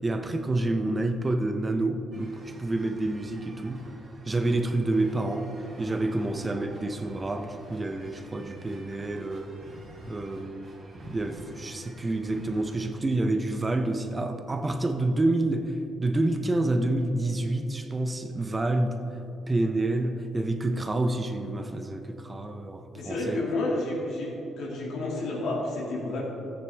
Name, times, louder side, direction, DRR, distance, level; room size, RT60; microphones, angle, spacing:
voice 1, 0.0-3.8 4.3-5.5 5.8-9.5 10.1-10.7 11.1-18.9 19.5-23.4, right 2 dB, 25° right, 7 dB, 0.8 m, -28 dB
sound 1, 2.1-12.8, right 1 dB, 45° right, 2.5 m, -48 dB
voice 2, 22.9-26.2, left 2 dB, 75° left, -2 dB, 2.4 m, -30 dB
13.5 x 9.0 x 3.5 m, 2.9 s
cardioid pair, 90°, 0 cm